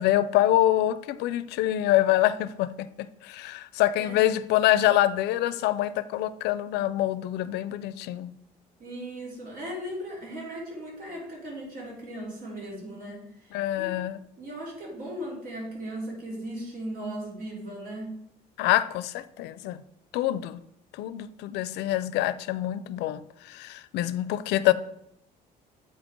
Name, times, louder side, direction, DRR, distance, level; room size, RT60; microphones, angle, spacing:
voice 1, 0.0-8.4 13.5-14.2 18.6-19.8 20.1-20.6 21.0-23.2 23.5-24.7, left 14 dB, 85° left, 0.4 m, -25 dB
voice 2, 8.8-13.9 14.4-18.2, right 1 dB, 55° right, 3.1 m, -37 dB
8.1 x 5.0 x 3.7 m
cardioid pair, 110°, 17 cm